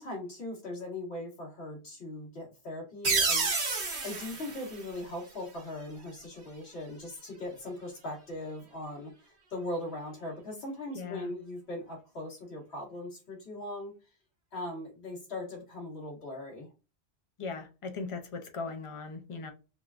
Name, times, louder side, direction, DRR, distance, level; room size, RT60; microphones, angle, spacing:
voice 1, 0.0-3.8 4.0-13.9 14.5-16.7, left 1 dB, 75° left, 1.6 m, -40 dB
sound 1, 3.0-5.6, right 4 dB, 90° right, 1.2 m, -30 dB
voice 2, 10.9-11.3 17.4-19.5, left 4 dB, 45° left, 0.4 m, -38 dB
3.7 x 2.2 x 2.4 m
omnidirectional pair, 1.1 m